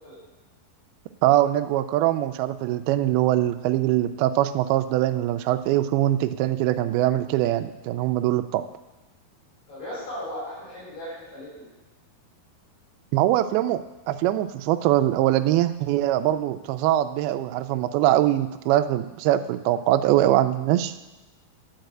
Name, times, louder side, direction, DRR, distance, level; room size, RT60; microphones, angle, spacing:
voice 1, 1.2-8.7 13.1-21.0, right 13 dB, 85° right, 10 dB, 2.3 m, -22 dB
voice 2, 9.7-11.7, left 1 dB, 75° left, -8 dB, 5.8 m, -36 dB
10.5 x 4.8 x 7.8 m, 1.1 s
omnidirectional pair, 4.6 m